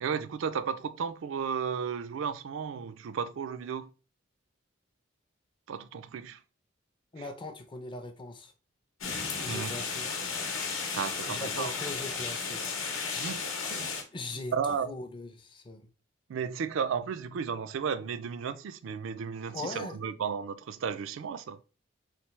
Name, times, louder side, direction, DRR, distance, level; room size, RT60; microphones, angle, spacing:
voice 1, 0.0-3.9 5.7-6.4 9.5-9.7 10.9-11.7 13.1-14.0 14.5-14.9 16.3-21.6, right 6 dB, 70° right, 0.3 m, -34 dB
voice 2, 7.1-8.5 9.4-10.3 11.2-12.8 14.1-15.9 19.5-20.0, left 2 dB, 25° left, 0.5 m, -40 dB
sound 1, 9.0-14.0, left 5 dB, 85° left, 0.8 m, -34 dB
3.3 x 3.2 x 3.0 m
head